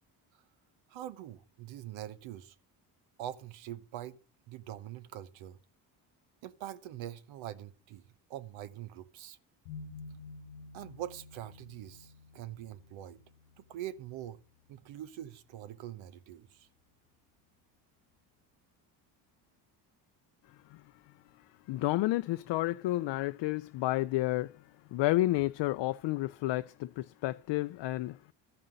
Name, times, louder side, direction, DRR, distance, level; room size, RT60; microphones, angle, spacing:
voice 1, 0.9-2.5 3.2-4.2 4.5-5.6 6.4-8.0 8.3-9.4 10.7-13.2 13.6-14.4 14.7-16.7, right 12 dB, 75° right, 1.0 m, -43 dB
sound 1, 9.7-15.4, left 4 dB, 80° left, 0.9 m, -51 dB
voice 2, 21.7-24.5 24.9-28.2, left 17 dB, 65° left, 0.5 m, -30 dB
13.0 x 5.6 x 7.7 m
supercardioid pair, 60°, 47 cm